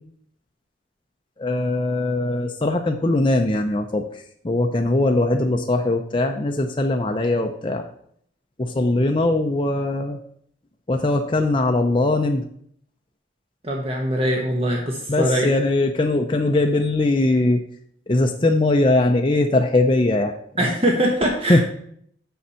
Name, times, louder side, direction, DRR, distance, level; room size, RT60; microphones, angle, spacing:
voice 1, 1.4-4.0 4.4-7.8 8.6-10.2 10.9-12.4 15.1-17.6 18.1-20.3 21.5-21.6, left 2 dB, 25° left, 3 dB, 0.6 m, -20 dB
voice 2, 13.6-15.5 20.6-21.6, equal, 35° right, 0 dB, 1.1 m, -22 dB
7.0 x 6.3 x 5.7 m, 0.65 s
head